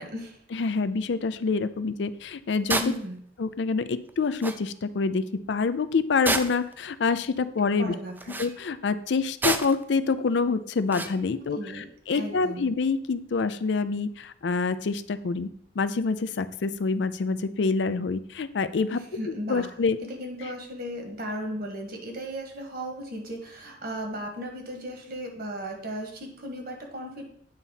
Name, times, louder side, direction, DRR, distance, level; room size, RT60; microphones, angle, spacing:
voice 1, 0.0-0.4 2.8-3.2 7.8-8.4 11.5-11.8 12.1-12.7 18.9-19.7 20.1-27.2, equal, 55° right, 3 dB, 1.6 m, -36 dB
voice 2, 0.5-2.8 3.4-7.9 8.4-15.5 15.8-19.0 19.3-20.0, left 4 dB, 65° left, 13 dB, 0.5 m, -26 dB
sound 1, 2.7-3.0 4.1-4.2 4.4-4.6 6.3-6.7 8.2-8.5 9.4-9.8 10.9-11.2, right 2 dB, 10° right, 0.4 m, -28 dB
8.9 x 4.1 x 5.6 m, 0.65 s
head